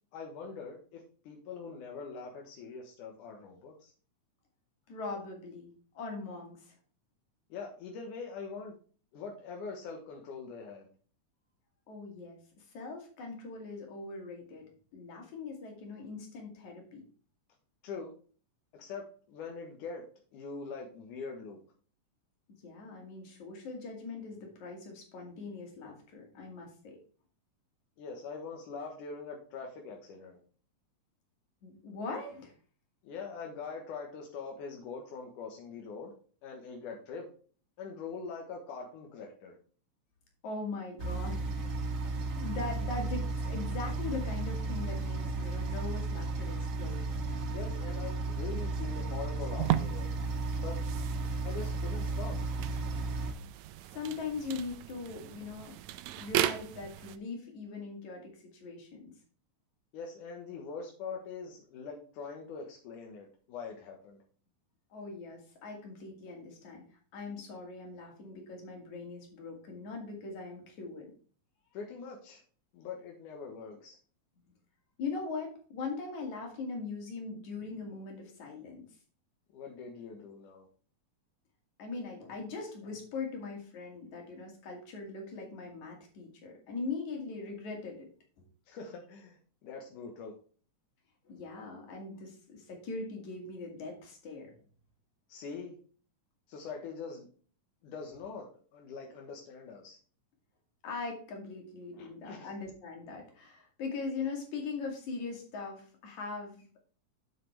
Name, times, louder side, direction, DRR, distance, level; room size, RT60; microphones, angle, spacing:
voice 1, 0.1-3.9 7.5-8.8 9.1-10.9 17.8-18.1 18.7-20.1 20.3-21.6 28.0-30.4 33.0-36.1 36.4-37.3 37.8-39.6 47.5-50.1 50.6-50.8 51.4-52.4 59.9-64.2 71.7-72.4 72.7-74.0 79.5-80.7 88.7-90.3 95.3-95.8 96.5-97.3 97.8-100.0 102.0-102.5, left 5 dB, 90° left, 1 dB, 2.8 m, -43 dB
voice 2, 4.9-6.7 11.9-17.0 22.6-27.0 31.6-32.5 40.4-41.8 42.3-47.0 53.9-55.7 56.1-59.1 64.9-66.8 67.1-71.1 75.0-78.9 81.8-88.1 88.4-88.5 91.3-94.5 100.8-106.8, left 4 dB, 70° left, 1 dB, 3.7 m, -41 dB
sound 1, 41.0-53.3, right 3 dB, 55° right, 2.4 m, -34 dB
sound 2, 49.6-57.2, right 13 dB, 80° right, 1.9 m, -36 dB
7.8 x 7.7 x 3.3 m, 0.42 s
omnidirectional pair, 3.5 m